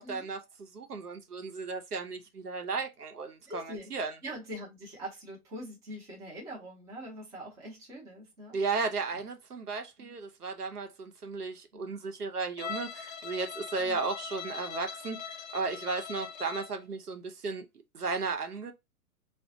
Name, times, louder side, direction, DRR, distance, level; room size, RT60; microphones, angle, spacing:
voice 1, 0.0-3.6 3.9-4.2 8.5-17.7 17.9-18.7, right 4 dB, 85° right, 0.8 m, -35 dB
voice 2, 3.5-3.9 4.2-8.6 9.1-9.2 10.0-10.1 11.7-11.9 13.8-14.0, equal, 5° right, 0.5 m, -43 dB
Bowed string instrument, 12.6-16.8, left 6 dB, 50° left, 0.5 m, -41 dB
3.8 x 2.1 x 2.6 m
figure-of-eight pair, 120°, 45 cm